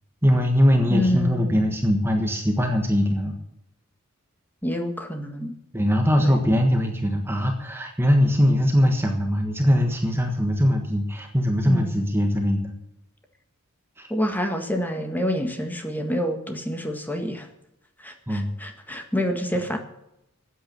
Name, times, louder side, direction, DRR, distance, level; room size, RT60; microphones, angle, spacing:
voice 1, 0.2-3.4 5.7-12.7 14.0-14.1 18.3-18.5, equal, 10° right, 3 dB, 1.4 m, -21 dB
voice 2, 0.9-1.6 4.6-5.5 6.2-6.4 11.6-11.9 14.1-17.5 18.0-19.8, left 1 dB, 10° left, 4 dB, 1.7 m, -27 dB
14.0 x 9.3 x 7.0 m, 0.85 s
head